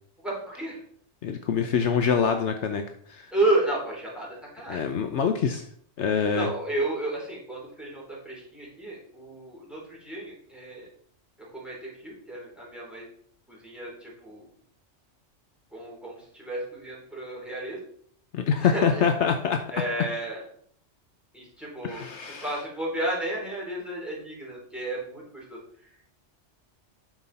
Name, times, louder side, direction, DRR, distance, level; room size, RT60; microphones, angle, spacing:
voice 1, 0.2-0.8 3.3-4.8 6.3-10.9 11.5-13.1 13.5-14.5 15.7-17.8 18.6-19.0 19.7-20.4 21.3-22.1 22.4-25.6, right 2 dB, ahead, -4 dB, 3.6 m, -32 dB
voice 2, 1.2-2.8 3.1-3.3 4.7-5.6 6.0-6.5 18.3-19.6 21.8-22.5, left 6 dB, 70° left, 6 dB, 1.0 m, -25 dB
9.0 x 6.1 x 4.1 m, 0.62 s
omnidirectional pair, 1.3 m